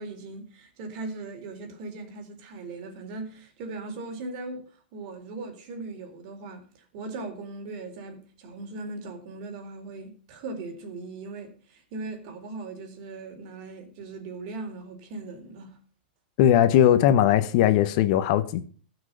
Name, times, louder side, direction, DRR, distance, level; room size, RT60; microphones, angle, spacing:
voice 1, 0.0-4.7 4.9-15.8, right 3 dB, 45° right, 3.9 m, -39 dB
voice 2, 16.4-18.7, left 11 dB, 45° left, 1.0 m, -19 dB
15.5 x 6.2 x 6.8 m
supercardioid pair, 155°, 5 cm